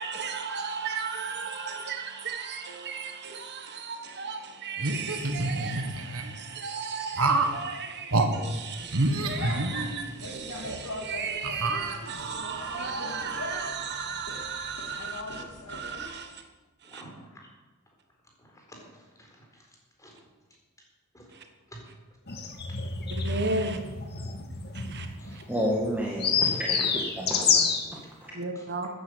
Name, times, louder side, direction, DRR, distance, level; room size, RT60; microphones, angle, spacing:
voice 1, 0.0-16.4 16.8-17.0 21.3-21.5 23.0-23.8 24.7-25.4 28.3-28.9, right 4 dB, 50° right, 1.3 m, -35 dB
sound 1, 4.8-6.2 7.2-7.6 8.1-8.3 8.9-10.2 10.6-10.8 11.4-12.4, right 2 dB, 70° right, 1.7 m, -27 dB
sound 2, 8.7-16.1, left 2 dB, 80° left, 2.6 m, -41 dB
voice 2, 16.8-17.5 17.9-18.0 18.4-19.7 20.0-20.1 21.1-21.4 21.7-21.8 25.2-25.4 26.4-26.5 26.8-26.9 28.2-28.6, equal, 15° left, 4.1 m, -50 dB
sound 3, 22.3-27.9, left 6 dB, 50° left, 1.8 m, -28 dB
voice 3, 25.5-26.8 27.2-28.3, equal, 10° right, 1.8 m, -31 dB
14.5 x 9.6 x 8.2 m
head